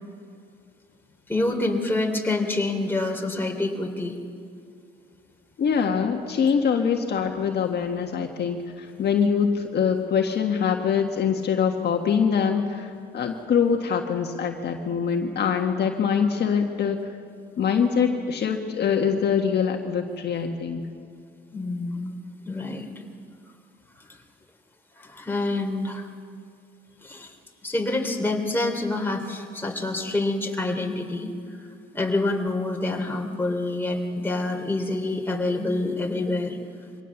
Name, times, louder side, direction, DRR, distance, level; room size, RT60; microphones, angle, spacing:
voice 1, 1.3-4.2 21.5-22.1 22.5-22.9 25.0-26.1 27.0-27.3 27.6-31.3 31.9-36.6, left 2 dB, 10° left, 1 dB, 3.1 m, -27 dB
voice 2, 5.6-17.0 17.6-20.9, left 6 dB, 60° left, 3 dB, 1.6 m, -24 dB
24.0 x 18.0 x 7.2 m, 2.3 s
cardioid pair, 80°, 19 cm